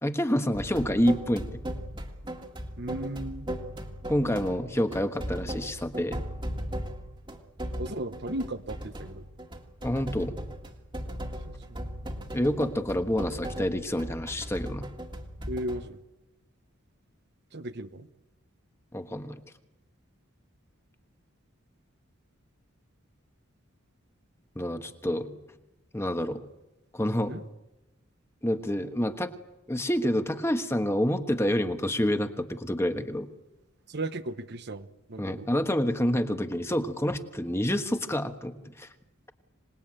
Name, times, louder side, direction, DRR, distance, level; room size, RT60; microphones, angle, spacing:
voice 1, 0.0-1.6 4.1-6.2 9.8-10.3 12.3-14.9 18.9-19.4 24.5-25.3 25.9-26.4 26.9-27.3 28.4-29.3 29.7-33.3 35.2-38.9, equal, 10° left, 8 dB, 1.3 m, -28 dB
sound 1, 0.5-15.9, equal, 25° right, 1.9 m, -37 dB
voice 2, 2.8-3.5 7.8-9.3 11.5-11.8 15.5-16.0 17.5-18.1 27.3-27.4 33.9-35.5, right 1 dB, 55° right, 11 dB, 1.1 m, -36 dB
26.5 x 19.5 x 8.9 m, 0.97 s
head